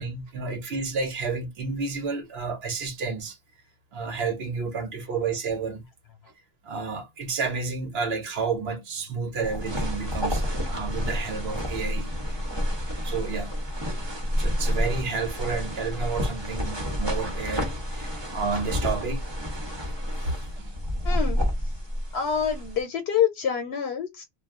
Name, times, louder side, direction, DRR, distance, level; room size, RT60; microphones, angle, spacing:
voice 1, 0.0-3.4 3.9-5.8 6.6-12.3 13.0-13.5 14.4-19.2 20.2-20.7, right 4 dB, 80° right, 1.0 m, -31 dB
sound 1, 9.4-22.8, equal, 30° right, 0.9 m, -29 dB
voice 2, 17.7-18.2 19.7-19.8 21.0-21.7 22.1-24.2, left 8 dB, 90° left, 0.9 m, -28 dB
2.2 x 2.2 x 3.5 m
omnidirectional pair, 1.0 m